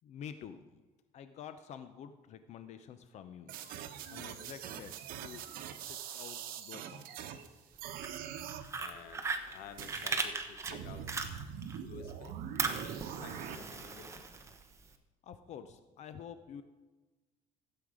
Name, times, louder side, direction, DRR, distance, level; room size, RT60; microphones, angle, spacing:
voice 1, 0.0-0.8 1.1-3.5 4.1-5.0 5.2-5.5 5.9-7.7 15.2-16.6, left 8 dB, 50° left, 10 dB, 0.7 m, -49 dB
sound 1, 3.5-7.5 7.8-8.7 9.8-10.2 10.6-13.6, right 9 dB, 80° right, 1.0 m, -43 dB
Fire, 7.8-11.8 12.1-14.9, right 4 dB, 20° right, 0.9 m, -38 dB
voice 2, 8.8-11.1 11.8-12.5 13.2-14.3, left 7 dB, 80° left, 9 dB, 1.0 m, -51 dB
15.5 x 7.9 x 5.0 m, 1.2 s
cardioid pair, 150°, 15 cm